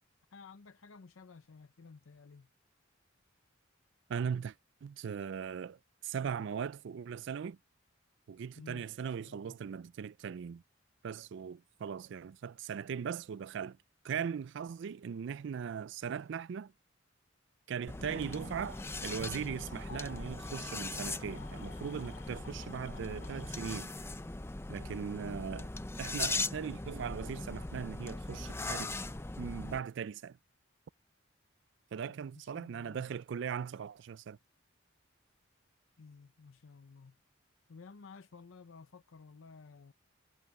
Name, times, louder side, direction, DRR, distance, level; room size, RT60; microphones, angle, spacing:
voice 1, 0.3-2.5 8.6-8.9 9.2-9.5 18.0-18.3 25.2-25.4 32.1-33.1 36.0-37.2 37.7-39.9, left 4 dB, 85° left, 0.7 m, -53 dB
voice 2, 4.1-4.5 4.8-7.6 8.3-10.6 11.0-13.8 14.0-16.7 17.7-23.9 24.7-25.7 26.0-28.9 29.4-30.4 31.9-34.4, right 7 dB, 65° right, 0.3 m, -39 dB
sound 1, 17.9-29.8, left 2 dB, 15° left, 0.5 m, -40 dB
sound 2, 18.0-23.9, left 6 dB, 60° left, 2.9 m, -55 dB
head